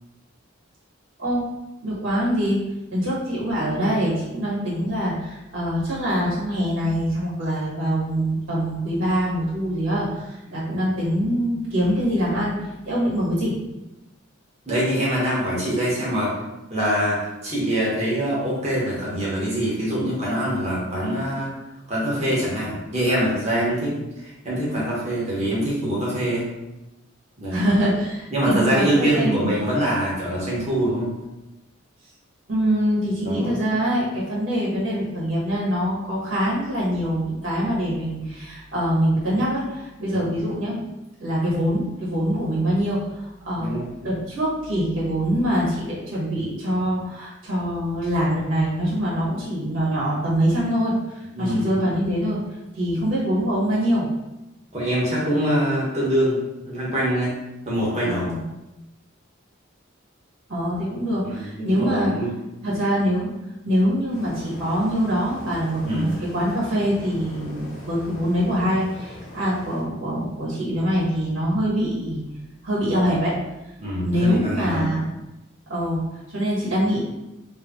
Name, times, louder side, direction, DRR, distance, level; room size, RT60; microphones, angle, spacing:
voice 1, 1.8-2.6 2.9-13.6 27.5-29.4 32.5-40.8 41.2-52.4 52.7-54.1 58.0-58.4 60.5-62.1 62.6-63.3 63.6-72.2 72.6-73.3 74.0-75.1 75.7-76.0 76.3-77.0, equal, 70° right, -7 dB, 1.4 m, -24 dB
voice 2, 14.6-16.4 16.7-21.5 21.9-26.5 27.4-27.7 28.3-31.2 33.2-33.6 40.1-40.3 43.5-43.9 51.3-51.6 54.7-57.4 57.6-58.2 61.2-62.3 65.8-66.1 73.8-74.8, equal, 35° right, -7 dB, 1.5 m, -24 dB
sound 1, 64.1-69.8, equal, 85° left, 1.2 m, -40 dB
3.3 x 3.0 x 3.8 m, 0.97 s
head